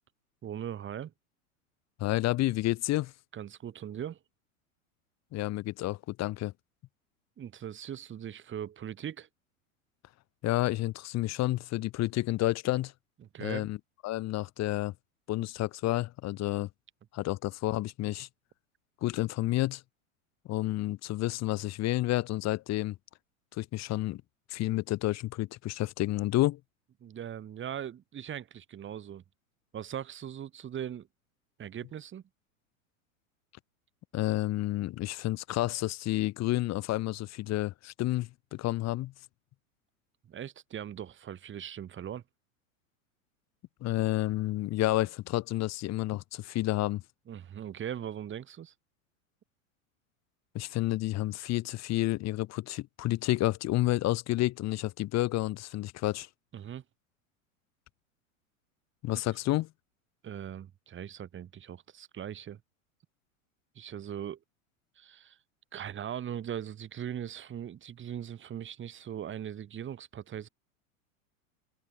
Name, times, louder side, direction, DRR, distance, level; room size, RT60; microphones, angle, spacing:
voice 1, 0.4-1.1 3.3-4.2 7.4-9.3 13.3-13.7 27.0-29.2 29.7-31.1 31.6-32.2 40.3-42.2 47.3-48.7 56.5-56.8 60.2-62.6 63.8-64.4 65.0-65.4 65.7-70.5, right 9 dB, 30° right, 4.3 m, -40 dB
voice 2, 2.0-3.1 5.3-6.5 10.4-12.9 13.4-13.8 14.0-14.9 15.3-16.7 17.1-18.3 19.0-19.8 20.5-22.9 23.6-24.2 24.5-26.6 34.1-39.1 43.8-47.0 50.5-56.3 59.0-59.7, left 16 dB, 40° left, 2.7 m, -30 dB
hypercardioid pair, 95°, 42 cm